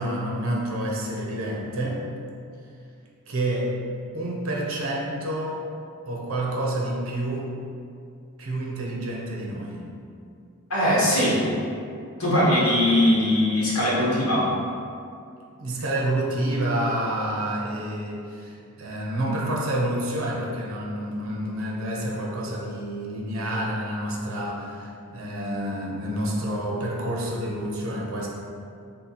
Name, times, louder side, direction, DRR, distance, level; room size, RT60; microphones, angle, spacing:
voice 1, 0.0-2.0 3.3-3.8 4.1-5.6 6.0-7.5 8.4-9.9 15.6-28.3, right 1 dB, 70° right, -3 dB, 0.8 m, -28 dB
voice 2, 10.7-11.4 12.2-14.5, left 1 dB, 85° left, -8 dB, 1.4 m, -20 dB
3.6 x 3.0 x 4.0 m, 2.4 s
head